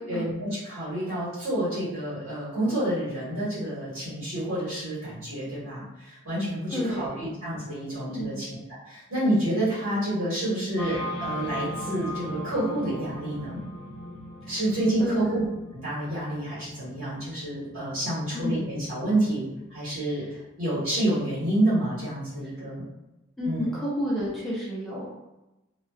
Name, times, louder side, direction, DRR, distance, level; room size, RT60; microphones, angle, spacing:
voice 1, 0.1-13.6 14.5-15.4 15.7-20.2 20.6-22.8 23.4-23.7, right 1 dB, 70° right, -11 dB, 1.3 m, -28 dB
voice 2, 6.7-7.2 8.0-8.4 10.8-10.9 14.5-14.6 15.0-15.5 18.3-18.7 23.4-25.1, equal, ahead, -8 dB, 0.5 m, -31 dB
sound 1, 10.8-20.4, equal, 85° left, 0.8 m, -39 dB
2.5 x 2.2 x 2.2 m, 0.99 s
head